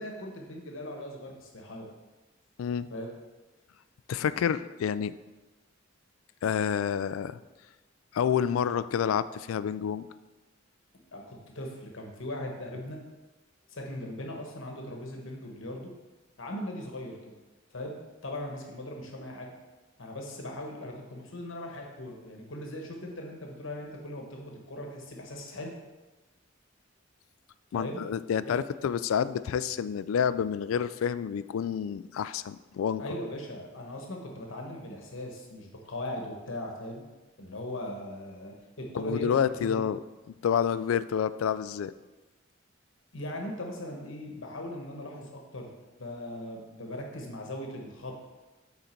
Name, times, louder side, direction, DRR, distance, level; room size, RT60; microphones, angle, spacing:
voice 1, 0.0-1.9 2.9-3.1 11.1-13.0 13.7-15.9 16.4-17.3 17.7-17.9 18.2-19.5 20.0-25.7 27.7-28.0 28.5-28.6 33.0-37.0 37.4-39.9 43.1-45.7 46.0-48.2, left 1 dB, 70° left, 1 dB, 1.1 m, -39 dB
voice 2, 4.1-5.1 6.4-7.4 8.1-10.1 27.7-33.0 39.0-40.0 40.4-41.9, left 8 dB, 90° left, 15 dB, 0.3 m, -28 dB
9.0 x 4.0 x 4.4 m, 1.2 s
head